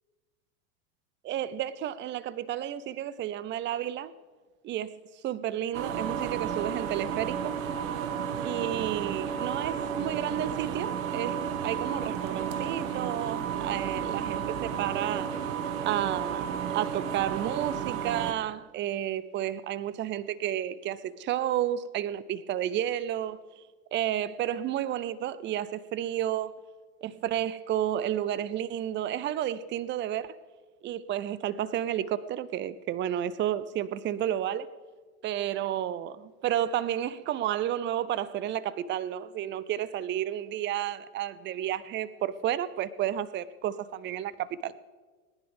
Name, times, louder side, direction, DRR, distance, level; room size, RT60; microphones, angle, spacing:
voice 1, 1.2-4.1 4.6-7.5 8.4-11.4 11.6-15.3 15.9-16.5 16.7-23.4 23.9-26.6 27.0-30.4 30.8-34.7 35.2-44.7, right 11 dB, 25° right, 0.6 m, -31 dB
sound 1, 5.7-18.3, right 8 dB, 65° right, 1.5 m, -32 dB
19.5 x 10.5 x 5.3 m
hypercardioid pair, 95°, 43 cm